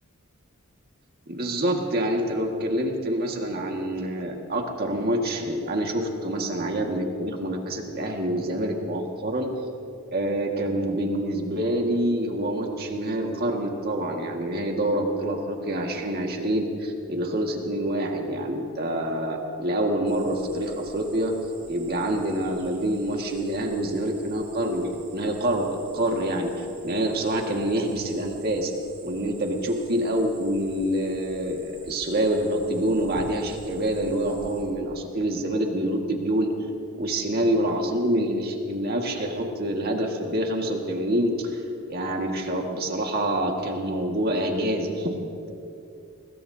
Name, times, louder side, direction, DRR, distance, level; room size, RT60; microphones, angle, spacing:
voice 1, 1.3-9.5 10.1-21.4 21.7-28.7 29.0-36.5 37.0-41.6 41.9-45.2, right 1 dB, 45° right, 1 dB, 1.8 m, -26 dB
Cricket, 20.1-34.6, right 2 dB, 20° right, 3.5 m, -48 dB
25.0 x 20.0 x 2.8 m, 2.7 s
head